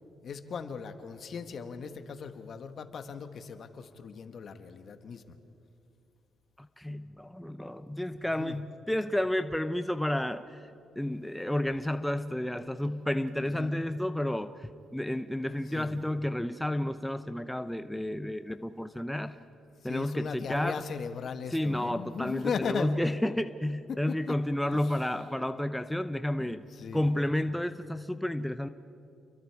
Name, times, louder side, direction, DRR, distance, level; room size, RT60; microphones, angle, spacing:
voice 1, 0.2-5.2 8.0-8.6 13.4-13.8 15.7-15.9 19.8-22.9 23.9-24.3 24.7-24.9 26.4-27.0, left 6 dB, 55° left, 8 dB, 1.4 m, -38 dB
voice 2, 6.6-19.4 19.8-20.8 21.5-26.6 26.9-28.7, left 1 dB, 5° left, 10 dB, 0.6 m, -31 dB
29.0 x 23.0 x 4.7 m, 2.7 s
cardioid pair, 90°, 0 cm